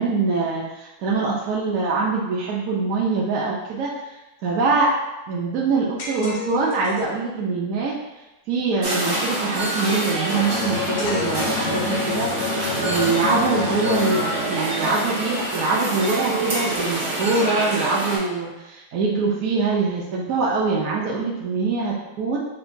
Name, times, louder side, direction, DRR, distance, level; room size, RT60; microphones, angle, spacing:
voice 1, 0.0-4.9 5.3-7.9 8.5-22.4, right 4 dB, 70° right, -4 dB, 0.9 m, -24 dB
sound 1, 6.0-7.2 11.0-12.6, left 5 dB, 90° left, 1.1 m, -34 dB
sound 2, 8.8-18.2, right 1 dB, 85° right, 1.7 m, -26 dB
Bowed string instrument, 10.3-15.3, left 4 dB, 70° left, 0.7 m, -28 dB
5.7 x 2.2 x 2.6 m, 1.0 s
omnidirectional pair, 1.6 m